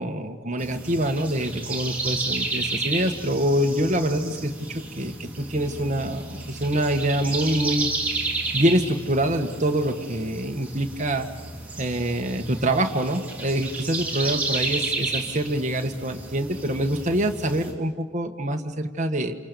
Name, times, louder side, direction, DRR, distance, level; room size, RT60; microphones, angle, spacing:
voice 1, 0.0-4.5 4.9-7.9 8.5-11.3 11.8-19.4, right 1 dB, 35° right, 4 dB, 1.7 m, -25 dB
sound 1, 0.6-17.7, right 3 dB, 5° right, 3.7 m, -32 dB
29.5 x 28.0 x 7.0 m, 1.5 s
head